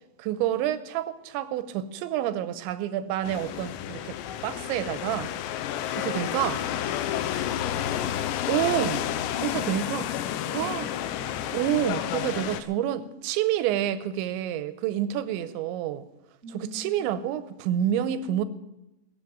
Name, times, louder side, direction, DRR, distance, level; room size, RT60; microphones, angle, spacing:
voice 1, 0.2-4.2 4.4-5.3 6.0-6.6 8.5-9.1 9.4-10.0 10.5-10.9 11.5-16.1 16.5-18.4, right 11 dB, 80° right, 2.9 m, -28 dB
sound 1, 3.2-12.6, left 11 dB, 80° left, 2.8 m, -30 dB
voice 2, 5.9-8.5 9.4-9.9 10.5-11.4 16.4-17.1, right 1 dB, ahead, 2.5 m, -46 dB
19.5 x 7.4 x 7.5 m
omnidirectional pair, 5.5 m